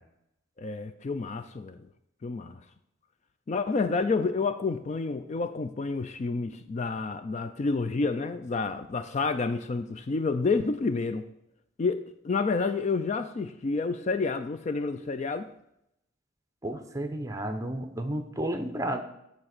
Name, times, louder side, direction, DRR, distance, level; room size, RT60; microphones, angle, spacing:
voice 1, 0.6-1.8 2.2-2.6 3.5-11.3 11.8-15.5, left 4 dB, 35° left, 10 dB, 0.3 m, -29 dB
voice 2, 16.6-19.0, right 1 dB, 15° right, 6 dB, 0.7 m, -32 dB
8.6 x 4.2 x 6.5 m, 0.80 s
head